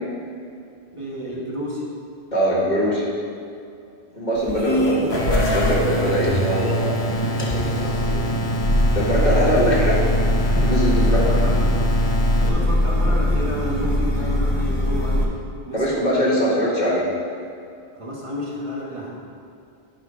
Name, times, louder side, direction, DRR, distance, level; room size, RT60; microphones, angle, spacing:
voice 1, 0.9-1.8 4.7-5.3 9.3-9.9 11.1-11.6 12.4-15.3 15.7-16.2 17.9-19.1, equal, 30° right, -5 dB, 1.3 m, -31 dB
voice 2, 2.3-3.0 4.1-7.1 7.4-8.3 8.9-10.0 10.5-11.4 15.7-17.1, equal, 45° left, -5 dB, 1.6 m, -22 dB
sound 1, 4.4-15.2, left 1 dB, 25° left, 0.9 m, -22 dB
sound 2, 5.1-12.5, right 1 dB, 85° left, 1.3 m, -26 dB
10.5 x 4.3 x 5.2 m, 2.5 s
omnidirectional pair, 1.1 m